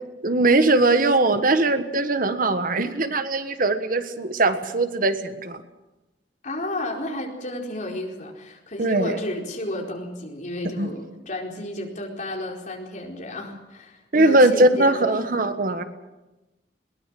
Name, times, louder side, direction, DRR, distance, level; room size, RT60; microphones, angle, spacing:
voice 1, 0.2-5.6 8.8-9.2 10.8-10.9 14.1-15.8, right 2 dB, 50° right, 9 dB, 1.5 m, -20 dB
voice 2, 6.4-15.2, left 1 dB, 45° left, 1 dB, 4.5 m, -32 dB
21.5 x 20.0 x 7.7 m, 1.0 s
head